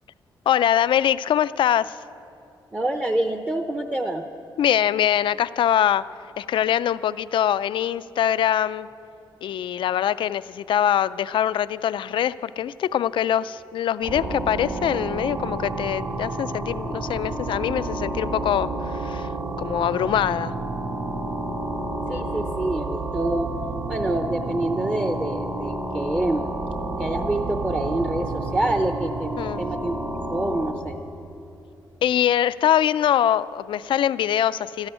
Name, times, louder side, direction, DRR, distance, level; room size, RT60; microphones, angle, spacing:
voice 1, 0.5-2.0 4.6-6.0 6.4-8.9 9.4-19.3 19.6-20.5 29.4-29.6 32.0-34.9, left 10 dB, 75° left, 16 dB, 0.4 m, -23 dB
voice 2, 2.7-4.2 22.1-23.5 23.9-26.5 27.0-29.3 29.6-30.0 30.3-31.0, right 1 dB, 15° right, 5 dB, 0.7 m, -26 dB
sound 1, 14.0-30.7, right 2 dB, 75° right, 3.3 m, -30 dB
13.0 x 10.5 x 10.0 m, 2.7 s
wide cardioid pair, 140°, 9 cm